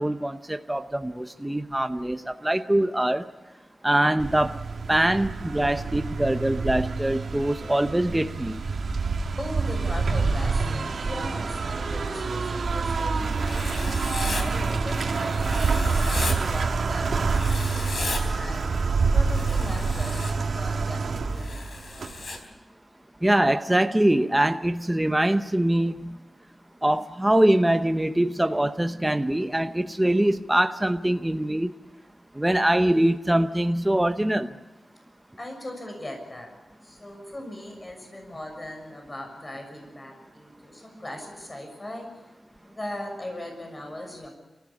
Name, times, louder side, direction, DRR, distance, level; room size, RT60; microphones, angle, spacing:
voice 1, 0.0-3.2 3.8-4.6 4.9-8.6 23.2-26.2 26.8-31.7 32.4-34.5, right 1 dB, 10° right, 8 dB, 0.9 m, -23 dB
sound 1, 4.2-22.4, right 4 dB, 75° right, 2.2 m, -27 dB
voice 2, 9.4-18.6 19.1-22.1 35.4-36.5 36.8-42.1 42.6-44.3, left 1 dB, 25° left, 3 dB, 6.5 m, -39 dB
Writing, 13.4-14.4 15.4-16.4 17.3-18.2 19.3-20.3 21.4-22.4, left 3 dB, 65° left, 4.2 m, -35 dB
29.5 x 15.0 x 7.1 m, 1.1 s
wide cardioid pair, 100°, 0 cm